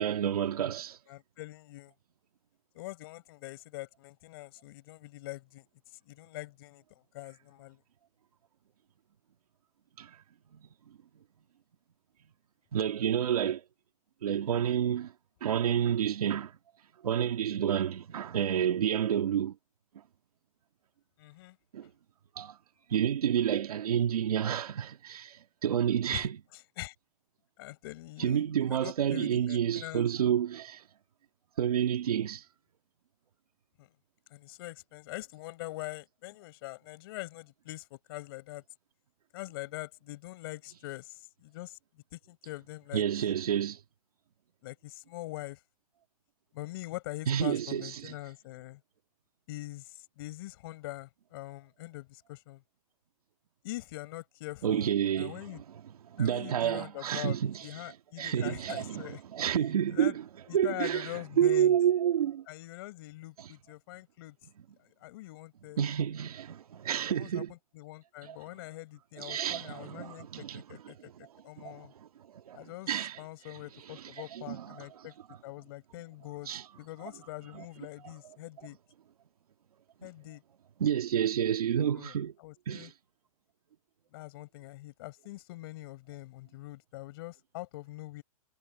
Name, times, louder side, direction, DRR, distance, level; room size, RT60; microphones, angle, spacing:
voice 1, 0.0-1.0 10.0-10.2 10.5-10.6 12.7-13.6 14.2-15.1 15.4-16.5 17.0-19.6 21.7-21.9 22.4-22.6 22.9-26.4 28.2-30.8 31.6-32.4 42.9-43.8 47.3-48.1 54.6-55.4 56.1-57.7 58.2-60.2 60.5-62.4 65.8-67.5 68.2-68.4 69.2-70.9 71.6-72.1 72.3-73.2 73.9-74.0 74.3-74.8 76.5-76.6 77.5-77.6 80.8-82.3 82.7-82.9, right 9 dB, 90° right, 1.9 m, -29 dB
voice 2, 1.1-1.9 2.7-5.7 6.0-6.8 7.1-7.8 21.2-21.6 26.1-26.3 26.8-26.9 27.6-28.4 28.7-30.1 33.8-33.9 34.3-38.6 39.3-41.8 42.1-43.0 44.6-45.6 46.5-48.8 49.5-52.6 53.6-55.6 56.2-59.2 59.6-60.2 60.5-61.7 62.5-64.4 64.8-65.8 67.1-71.1 71.4-71.9 72.5-75.1 75.4-76.5 76.8-78.8 80.0-80.4 82.0-82.1 82.4-82.9 84.1-88.2, left 19 dB, 40° left, 6.7 m, -43 dB
hypercardioid pair, 165°, 18 cm